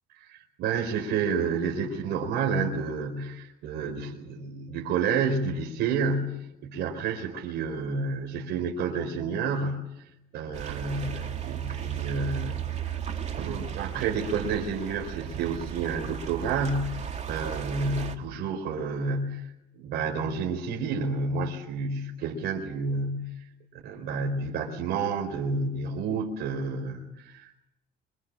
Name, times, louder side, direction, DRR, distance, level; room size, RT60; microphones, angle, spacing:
voice 1, 0.1-9.9 10.3-13.0 13.4-23.3 23.7-27.5, right 4 dB, 80° right, 1 dB, 4.4 m, -30 dB
sound 1, 10.5-18.2, right 9 dB, 45° right, 3.2 m, -35 dB
27.5 x 25.5 x 7.5 m, 0.86 s
cardioid pair, 110°, 17 cm